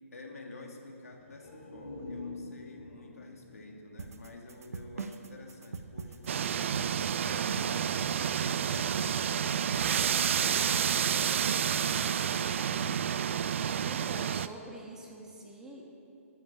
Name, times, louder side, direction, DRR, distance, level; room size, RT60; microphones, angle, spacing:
voice 1, 0.1-9.1 9.6-13.1, left 2 dB, 85° left, 1 dB, 2.5 m, -50 dB
sound 1, 1.2-4.9 5.3-5.4, left 3 dB, 65° left, 4.0 m, -46 dB
sound 2, 4.0-11.9, right 5 dB, 80° right, 0.8 m, -42 dB
sound 3, 6.3-14.5, right 8 dB, 55° right, 0.5 m, -29 dB
voice 2, 13.8-15.8, right 1 dB, 5° right, -1 dB, 1.5 m, -46 dB
12.5 x 7.7 x 8.8 m, 2.7 s
hypercardioid pair, 150°, 8 cm